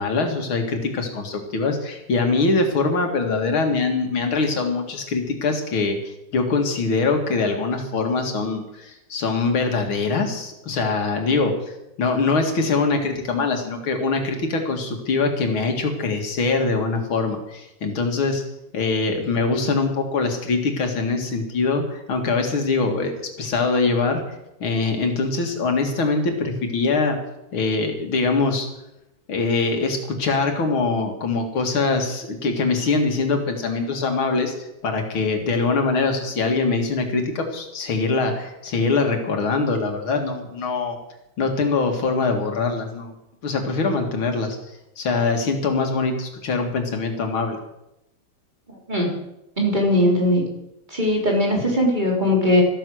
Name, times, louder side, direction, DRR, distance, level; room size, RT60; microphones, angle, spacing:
voice 1, 0.0-11.6 12.0-18.4 18.7-23.1 23.4-24.3 24.6-27.2 27.5-28.7 29.3-41.0 41.4-43.1 43.4-44.6 45.0-47.6, left 3 dB, 90° left, 4 dB, 3.0 m, -23 dB
voice 2, 49.6-50.4 50.9-52.6, left 1 dB, 20° right, -1 dB, 3.7 m, -19 dB
14.0 x 13.5 x 6.4 m, 0.87 s
omnidirectional pair, 2.2 m